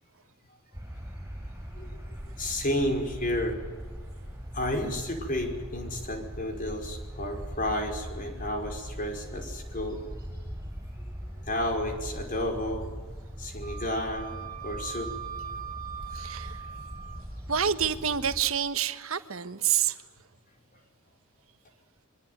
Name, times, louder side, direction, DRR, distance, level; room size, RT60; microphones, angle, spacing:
sound 1, 0.7-18.4, equal, 15° right, 7.0 m, -40 dB
voice 1, 2.4-3.6 4.5-10.0 11.5-12.9 13.4-15.1, left 1 dB, 40° left, 3 dB, 5.3 m, -31 dB
Wind instrument woodwind instrument, 13.6-17.3, right 8 dB, 45° right, 2.5 m, -41 dB
voice 2, 16.1-16.6 17.5-20.0, right 8 dB, 75° right, 11 dB, 1.4 m, -28 dB
25.5 x 23.5 x 9.6 m, 1.4 s
head